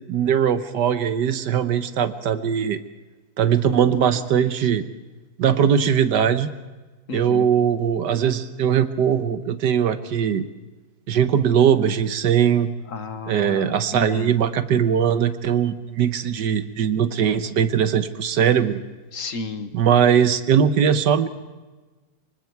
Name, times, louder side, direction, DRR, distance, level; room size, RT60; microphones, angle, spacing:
voice 1, 0.1-2.8 3.4-4.8 5.4-6.5 7.1-10.4 11.1-12.7 13.3-18.8 19.7-21.3, right 8 dB, 80° right, 11 dB, 1.7 m, -20 dB
voice 2, 7.1-7.5 12.9-14.3 19.1-19.7, left 3 dB, 55° left, 10 dB, 1.5 m, -32 dB
25.5 x 24.0 x 4.7 m, 1.2 s
omnidirectional pair, 1.8 m